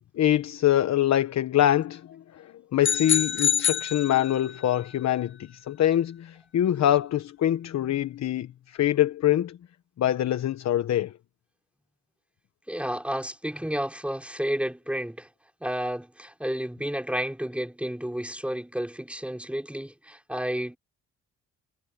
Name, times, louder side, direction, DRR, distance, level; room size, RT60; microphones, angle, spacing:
voice 1, 0.2-9.6 10.0-11.1, left 12 dB, 65° left, 1.2 m, -24 dB
sound 1, 2.8-4.7, left 8 dB, 40° left, 0.7 m, -26 dB
voice 2, 12.7-15.3 15.6-20.8, equal, 5° right, 4.6 m, -31 dB
cardioid pair, 90°, 30 cm